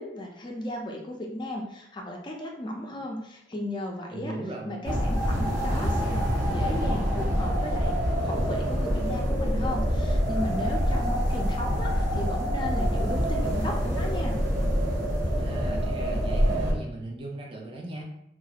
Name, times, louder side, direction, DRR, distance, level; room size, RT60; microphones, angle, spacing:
voice 1, 0.0-4.3 4.7-14.4, left 1 dB, 25° left, 0 dB, 0.4 m, -35 dB
voice 2, 4.1-4.9 15.1-18.0, right 2 dB, 30° right, 0 dB, 0.4 m, -38 dB
sound 1, 4.8-16.7, equal, 85° right, 0.8 m, -26 dB
3.0 x 2.4 x 2.8 m, 0.76 s
head